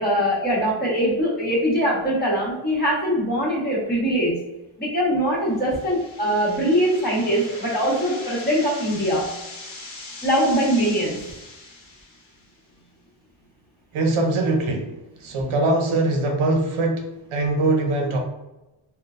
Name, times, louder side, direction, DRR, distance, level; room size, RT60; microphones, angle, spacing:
voice 1, 0.0-4.4 4.8-9.3 10.2-11.2, equal, 20° left, -7 dB, 1.3 m, -22 dB
sound 1, 5.5-12.5, left 2 dB, 70° left, 0.9 m, -40 dB
voice 2, 13.9-14.9 15.2-18.2, right 2 dB, 75° right, 2 dB, 0.7 m, -22 dB
3.7 x 2.2 x 2.4 m, 0.99 s
wide cardioid pair, 115°, 49 cm